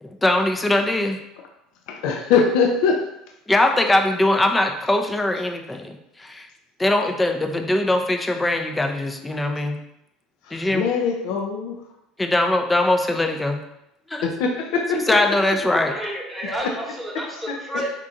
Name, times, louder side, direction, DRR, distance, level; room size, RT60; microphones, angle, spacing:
voice 1, 0.0-1.2 3.5-6.5 6.8-9.8 10.5-10.9 12.2-13.6 14.1-14.3 14.9-15.9, left 1 dB, 15° left, 5 dB, 0.5 m, -21 dB
voice 2, 1.9-3.0 10.5-11.7 14.2-15.0, left 5 dB, 60° left, 2 dB, 0.6 m, -22 dB
voice 3, 15.9-17.9, right 1 dB, ahead, -4 dB, 1.2 m, -30 dB
4.5 x 3.6 x 2.5 m, 0.85 s
figure-of-eight pair, 65°, 0 cm